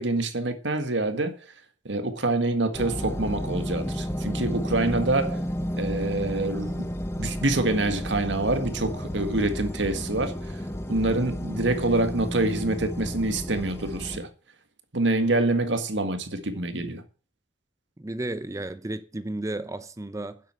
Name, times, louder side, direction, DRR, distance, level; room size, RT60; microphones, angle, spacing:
voice 1, 0.0-1.3 1.9-5.4 5.8-6.9 7.2-10.6 10.9-14.3 14.9-17.0, right 2 dB, 80° right, 1.8 m, -26 dB
sound 1, 2.7-14.2, equal, 15° left, 1.0 m, -32 dB
voice 2, 16.5-17.0 18.0-20.4, right 1 dB, 20° right, 0.6 m, -34 dB
10.5 x 7.9 x 7.5 m
head